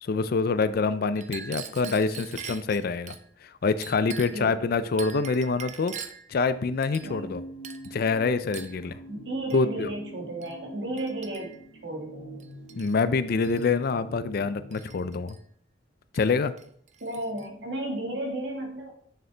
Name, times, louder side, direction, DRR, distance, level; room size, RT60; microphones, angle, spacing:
voice 1, 0.0-3.2 3.4-6.0 6.3-7.4 7.9-9.0 9.5-9.9 12.8-15.4 16.1-16.5, left 4 dB, 50° left, 13 dB, 0.4 m, -26 dB
Chink clink, 1.2-3.2 3.8-4.5 5.0-6.3 6.8-7.3 7.6-7.9 8.5-8.8 9.5-9.7 10.4-10.6 11.0-11.7 12.4-13.0 13.3-13.7 14.7-15.4 16.1-16.3 16.6-17.5, right 8 dB, 40° right, 0.5 m, -43 dB
sound 1, 7.0-15.2, right 1 dB, 85° left, 1.3 m, -45 dB
voice 2, 7.0-7.4 8.8-11.6 11.8-12.4 17.0-18.9, right 1 dB, 65° right, 1 dB, 1.7 m, -34 dB
6.7 x 6.6 x 3.4 m, 0.63 s
head